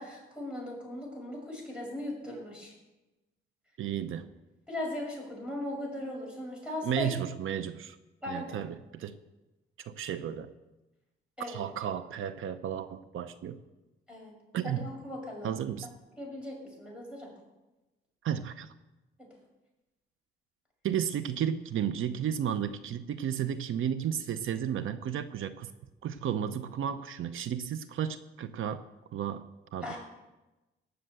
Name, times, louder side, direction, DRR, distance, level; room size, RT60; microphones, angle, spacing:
voice 1, 0.0-2.7 4.7-7.1 8.2-8.6 11.4-11.6 14.1-14.3 14.6-15.5 15.8-15.9 16.2-17.3 19.2-19.3 29.8-30.0, left 1 dB, 5° right, -2 dB, 6.4 m, -38 dB
voice 2, 3.8-4.3 6.8-8.0 8.3-9.2 9.9-10.5 11.5-13.6 14.5-14.9 15.4-15.9 18.2-18.7 20.8-25.7 26.0-28.8 29.1-29.4 29.7-29.9, right 9 dB, 75° right, 12 dB, 0.7 m, -33 dB
18.0 x 6.8 x 8.0 m, 1.1 s
cardioid pair, 110°, 21 cm